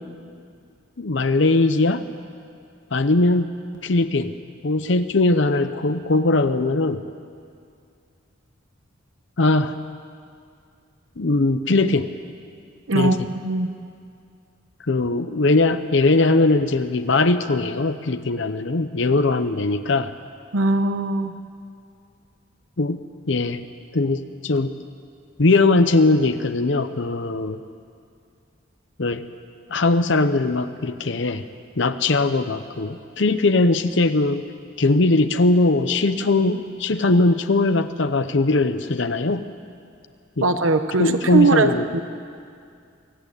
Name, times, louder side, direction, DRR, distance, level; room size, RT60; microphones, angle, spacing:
voice 1, 1.0-2.0 2.9-3.5 3.8-4.3 4.6-7.0 9.4-9.7 11.2-12.1 12.9-13.2 14.9-20.1 22.8-23.0 23.3-23.6 23.9-24.7 25.4-27.6 29.0-29.2 29.7-31.5 31.8-34.4 34.8-39.4 40.4-40.5 41.0-41.9, left 2 dB, 65° left, 10 dB, 0.8 m, -20 dB
voice 2, 20.5-21.3 40.4-42.0, right 3 dB, 85° right, 9 dB, 1.0 m, -20 dB
23.5 x 14.5 x 9.8 m, 2.3 s
head